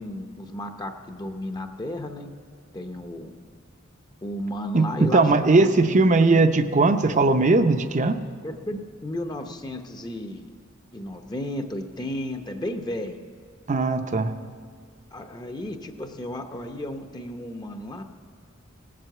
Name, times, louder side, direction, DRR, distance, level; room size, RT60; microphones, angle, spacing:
voice 1, 0.0-2.3 2.7-3.3 4.2-6.0 8.4-10.5 10.9-13.2 15.1-18.0, left 1 dB, 20° left, 6 dB, 0.7 m, -33 dB
voice 2, 4.7-8.2 13.7-14.3, right 3 dB, 40° right, 9 dB, 0.6 m, -19 dB
18.0 x 7.6 x 7.9 m, 2.1 s
head